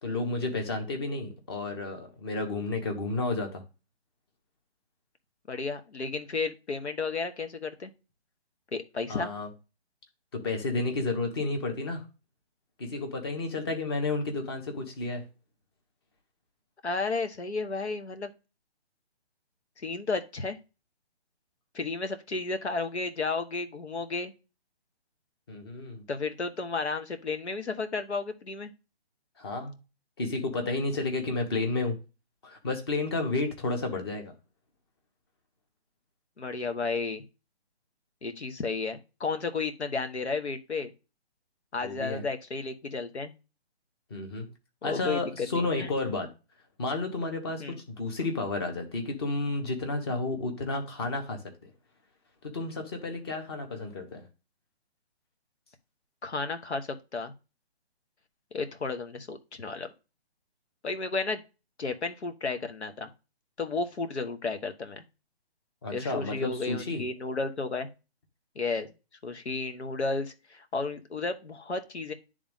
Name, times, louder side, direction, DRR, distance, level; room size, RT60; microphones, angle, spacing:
voice 1, 0.0-3.6 9.1-9.5 10.3-12.0 12.8-15.3 25.5-26.0 29.4-29.7 30.2-32.0 32.4-34.3 41.8-42.2 44.1-44.5 44.8-46.3 46.8-51.7 52.4-54.3 65.8-67.0, left 3 dB, 25° left, 1.0 m, -31 dB
voice 2, 5.5-7.9 8.7-9.3 16.8-18.3 19.8-20.6 21.7-24.3 26.1-28.7 36.4-37.2 38.2-40.9 41.7-43.3 44.8-45.9 47.6-47.8 56.2-57.3 58.5-59.9 60.8-61.4 61.8-63.1 63.6-65.0 65.9-67.9 68.5-68.9 69.2-72.1, left 4 dB, 90° left, 1.4 m, -33 dB
10.0 x 3.6 x 3.5 m
hypercardioid pair, 165°, 33 cm